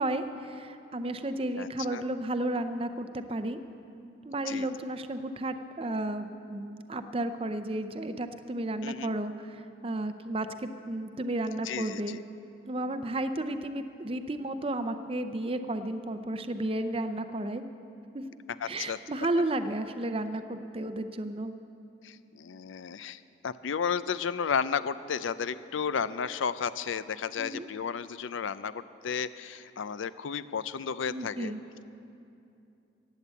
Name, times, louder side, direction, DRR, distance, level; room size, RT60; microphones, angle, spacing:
voice 1, 0.0-3.6 4.2-12.2 12.7-17.6 18.1-18.2 18.7-21.5 27.4-27.7 31.1-31.6, right 1 dB, 30° right, 9 dB, 0.5 m, -33 dB
voice 2, 1.6-2.0 4.5-4.7 8.8-9.1 11.6-12.2 18.6-19.0 22.0-31.5, left 6 dB, 85° left, 15 dB, 0.5 m, -33 dB
15.0 x 9.2 x 8.2 m, 2.7 s
head